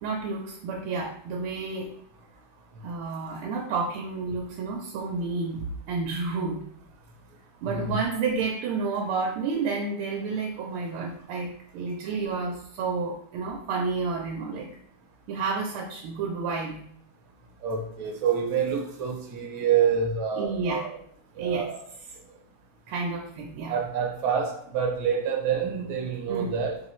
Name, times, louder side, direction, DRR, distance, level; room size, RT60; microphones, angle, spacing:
voice 1, 0.0-1.9 2.8-6.6 7.6-14.7 15.3-16.8 20.4-20.8 21.4-21.7 22.9-23.7 26.3-26.6, right 4 dB, 90° right, 0 dB, 1.5 m, -30 dB
voice 2, 17.6-21.0 21.4-21.8 23.7-26.8, right 7 dB, 75° right, 2 dB, 1.5 m, -27 dB
4.3 x 3.1 x 3.0 m, 0.65 s
omnidirectional pair, 2.3 m